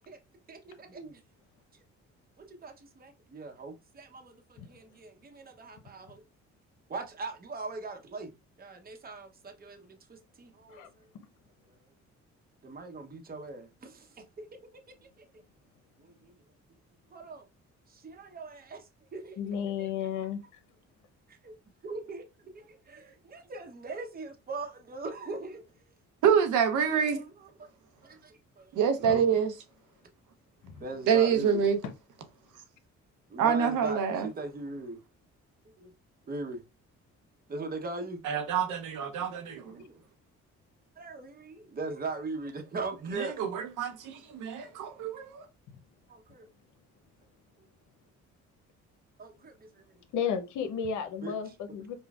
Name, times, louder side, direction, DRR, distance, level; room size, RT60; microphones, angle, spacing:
voice 1, 0.5-1.2 2.4-6.2 6.9-8.3 8.6-10.8 12.6-14.5 15.2-15.3 16.0-16.4 17.1-17.5 17.9-18.9 19.1-19.9 21.3-21.5 21.8-22.2 22.5-25.6 27.1-27.7 28.0-29.2 30.8-31.6 33.3-35.0 35.8-35.9 36.3-36.6 37.5-38.2 39.3-40.0 41.0-43.4 46.1-46.5 49.2-49.9 51.2-51.3, right 3 dB, 30° right, 0.9 m, -40 dB
voice 2, 19.4-20.4 29.0-29.2 30.6-30.8 45.7-45.8 50.1-51.9, left 7 dB, 80° left, 0.8 m, -33 dB
voice 3, 26.2-27.2 28.7-29.5 31.1-31.8 33.4-34.3 38.2-39.8 43.0-45.4, right 7 dB, 85° right, 0.9 m, -27 dB
5.3 x 2.2 x 2.4 m
cardioid pair, 90°, 30 cm